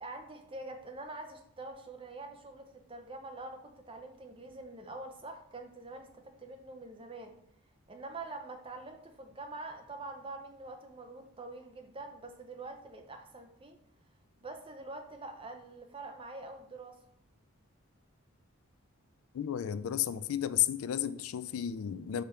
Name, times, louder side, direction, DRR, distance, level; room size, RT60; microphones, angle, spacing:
voice 1, 0.0-7.3 7.9-13.8 14.4-17.0, right 2 dB, 25° right, 0.6 m, -45 dB
voice 2, 19.3-22.2, left 10 dB, 75° left, 0.3 m, -32 dB
5.1 x 3.4 x 5.6 m
head